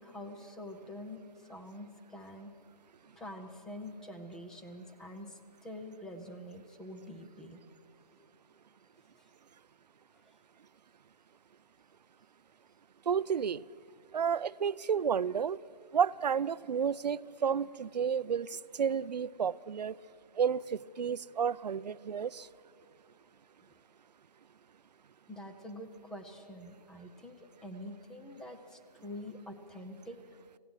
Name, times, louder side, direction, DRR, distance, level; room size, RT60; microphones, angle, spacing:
voice 1, 0.0-2.5 3.1-7.6 9.2-9.3 10.1-10.3 25.3-30.2, left 1 dB, 5° left, 6 dB, 0.6 m, -46 dB
voice 2, 13.1-13.6 14.1-15.6 15.9-20.0 20.4-22.5, right 7 dB, 80° right, 19 dB, 0.5 m, -31 dB
27.0 x 17.0 x 6.3 m, 2.6 s
hypercardioid pair, 160°, 21 cm